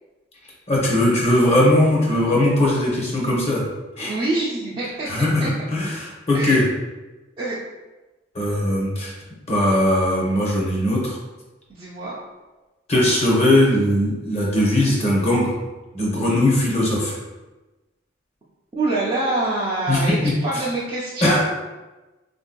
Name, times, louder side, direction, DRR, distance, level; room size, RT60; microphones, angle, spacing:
voice 1, 0.7-3.6 4.0-4.1 5.1-6.6 8.3-9.1 9.5-11.2 12.9-15.5 15.9-17.2 19.9-20.6 21.2-21.4, left 1 dB, 30° left, -3 dB, 0.8 m, -19 dB
voice 2, 4.0-5.5 6.3-6.6 7.4-7.6 11.7-12.2 18.7-21.4, right 2 dB, 25° right, -9 dB, 0.5 m, -25 dB
3.6 x 2.6 x 2.2 m, 1.1 s
head